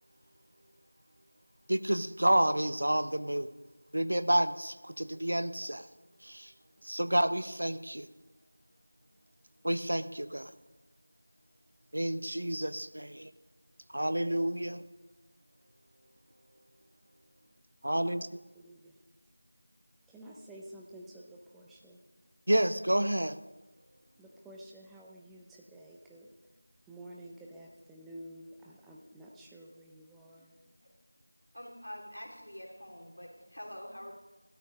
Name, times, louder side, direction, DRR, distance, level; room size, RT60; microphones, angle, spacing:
voice 1, 1.7-3.5 3.9-5.9 6.2-6.5 6.8-8.1 9.6-10.5 11.9-13.3 13.9-14.8 17.8-18.4 22.5-23.4, right 1 dB, 55° right, 12 dB, 0.8 m, -29 dB
voice 2, 18.5-19.0 20.1-22.0 24.2-26.3 26.9-30.5, right 1 dB, ahead, -3 dB, 0.4 m, -50 dB
voice 3, 31.5-34.1, equal, 75° left, 0 dB, 3.1 m, -46 dB
13.0 x 12.5 x 5.1 m, 1.1 s
figure-of-eight pair, 175°, 0 cm